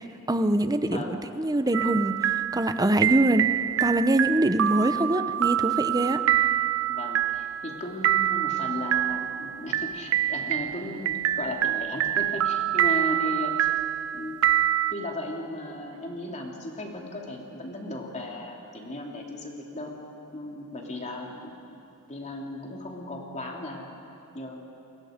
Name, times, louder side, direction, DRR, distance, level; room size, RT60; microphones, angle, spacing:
voice 1, 0.3-3.5 3.8-6.2, right 1 dB, 15° right, 10 dB, 0.8 m, -24 dB
sound 1, 1.7-14.9, right 11 dB, 65° right, 0.5 m, -26 dB
voice 2, 6.9-13.7 14.1-14.4 14.9-19.9 20.3-21.5 22.1-24.6, left 1 dB, 30° left, 0 dB, 2.9 m, -36 dB
30.0 x 22.0 x 5.2 m, 2.8 s
head